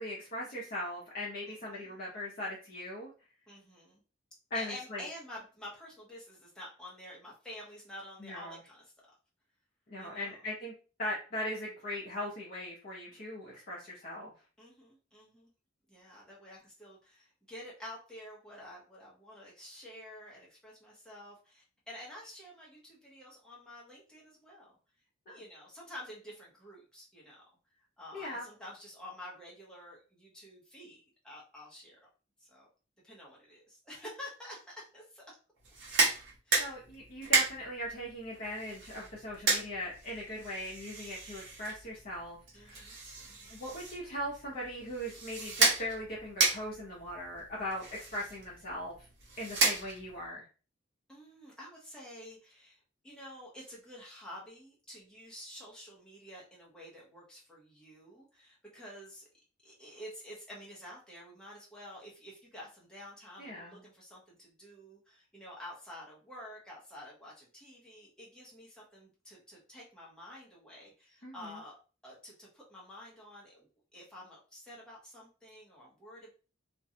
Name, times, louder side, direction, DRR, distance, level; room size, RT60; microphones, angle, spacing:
voice 1, 0.0-3.1 4.5-5.0 8.2-8.6 9.9-10.7 11.0-14.3 25.3-25.4 28.1-28.4 36.6-42.9 43.5-49.1 49.4-50.4 63.4-63.8 71.2-71.6, left 1 dB, 45° left, -4 dB, 0.6 m, -39 dB
voice 2, 1.4-2.0 3.5-4.0 4.5-8.9 10.0-10.4 14.6-15.5 15.9-24.8 25.3-27.4 28.0-32.0 32.4-32.7 33.0-35.2 36.5-36.8 42.5-43.6 51.1-59.3 59.6-71.8 72.0-76.3, left 1 dB, 5° left, -5 dB, 0.8 m, -49 dB
sound 1, 35.6-50.3, right 3 dB, 70° right, 0.9 m, -34 dB
2.5 x 2.2 x 2.7 m, 0.35 s
head